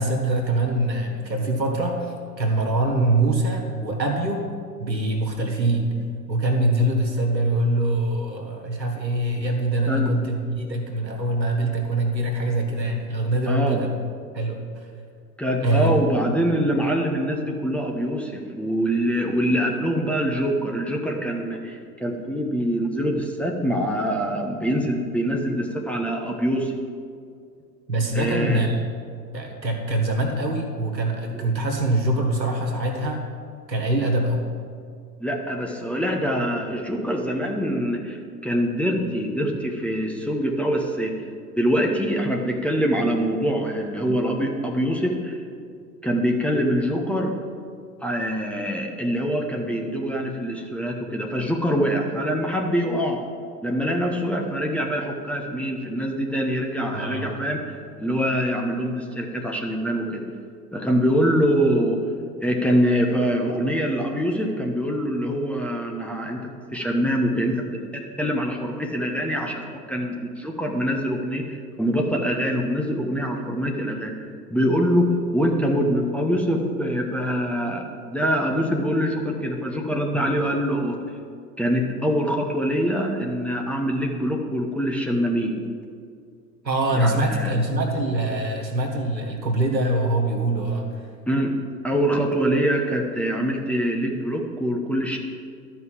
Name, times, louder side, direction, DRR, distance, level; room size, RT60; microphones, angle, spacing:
voice 1, 0.0-4.4 4.8-5.9 6.3-13.9 14.3-14.9 15.6-15.9 27.9-28.8 29.3-33.3 33.7-34.4 56.9-57.3 86.6-91.0, right 1 dB, 85° right, 2 dB, 1.7 m, -24 dB
voice 2, 13.5-13.8 15.4-26.7 28.1-28.7 31.3-31.4 35.2-41.2 41.6-45.4 46.0-47.3 48.0-53.2 53.6-57.6 58.0-60.2 60.7-62.0 62.4-67.7 67.9-81.0 81.6-85.6 87.0-87.6 91.3-91.5 91.8-95.2, equal, 5° left, 0 dB, 1.0 m, -24 dB
12.0 x 5.5 x 7.6 m, 2.3 s
figure-of-eight pair, 90°, 50 cm